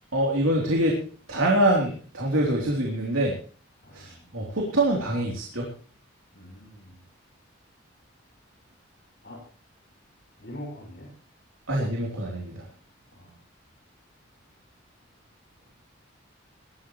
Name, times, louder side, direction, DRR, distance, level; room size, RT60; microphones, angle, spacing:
voice 1, 0.1-1.0 1.3-3.4 3.9-5.7 11.7-12.7, right 1 dB, 85° right, -1 dB, 3.5 m, -25 dB
voice 2, 3.8-4.4 6.3-7.0 9.2-9.4 10.4-11.1 13.1-13.4, equal, 55° left, -2 dB, 6.3 m, -43 dB
21.0 x 13.5 x 3.2 m, 0.41 s
head